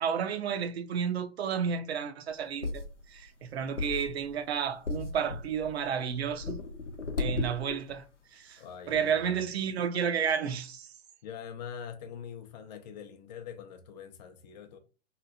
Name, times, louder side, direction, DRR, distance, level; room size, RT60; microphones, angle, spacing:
voice 1, 0.0-2.8 3.1-6.6 7.2-8.0 8.3-8.6 8.9-10.9, right 7 dB, 60° right, 0.5 m, -31 dB
sound 1, 2.3-8.0 8.6-8.7 8.9-9.1, left 3 dB, 90° left, 0.7 m, -36 dB
voice 2, 8.6-9.4 11.2-14.8, left 7 dB, 40° left, 0.5 m, -44 dB
2.9 x 2.4 x 2.4 m
figure-of-eight pair, 105°, 35 cm